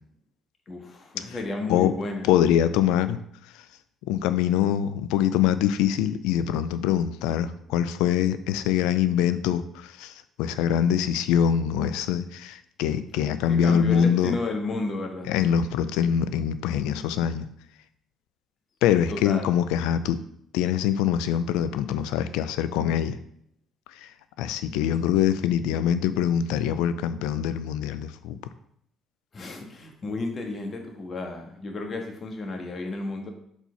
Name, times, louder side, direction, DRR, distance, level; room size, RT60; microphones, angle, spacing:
voice 1, 0.7-2.3 13.5-15.3 19.1-19.5 29.3-33.3, left 2 dB, 45° left, 3 dB, 1.5 m, -32 dB
voice 2, 2.2-3.2 4.1-10.1 10.4-14.3 15.3-17.5 18.8-20.2 20.5-23.2 24.4-28.4, left 9 dB, 85° left, 12 dB, 0.4 m, -24 dB
4.4 x 4.2 x 5.7 m, 0.70 s
supercardioid pair, 65°, 0 cm